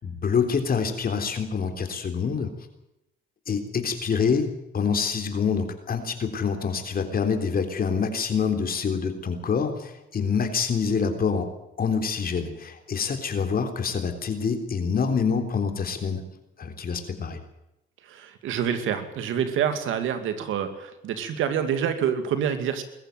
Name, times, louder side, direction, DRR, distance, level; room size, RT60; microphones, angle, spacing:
voice 1, 0.0-2.5 3.5-4.5 4.7-11.5 11.8-16.2 16.6-17.4, left 6 dB, 50° left, 7 dB, 3.6 m, -26 dB
voice 2, 18.1-22.8, right 8 dB, 85° right, 9 dB, 2.6 m, -27 dB
21.5 x 14.0 x 9.2 m, 0.88 s
cardioid pair, 90°, 20 cm